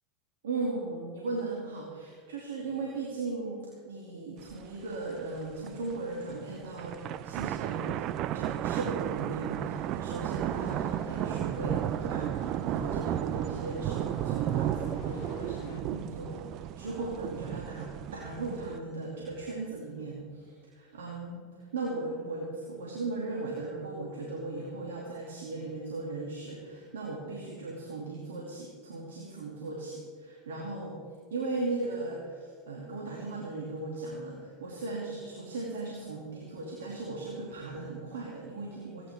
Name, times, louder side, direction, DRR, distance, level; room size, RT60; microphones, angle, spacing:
voice 1, 0.4-21.5 21.7-31.0 31.3-39.1, right 3 dB, 80° right, -3 dB, 2.8 m, -37 dB
sound 1, 4.5-4.6 4.9-5.0 5.5-5.9 6.6-18.8, right 12 dB, 50° right, 0.5 m, -33 dB
sound 2, 10.4-15.8, left 10 dB, 60° left, 0.9 m, -48 dB
25.5 x 10.5 x 3.7 m, 2.1 s
hypercardioid pair, 90°, 0 cm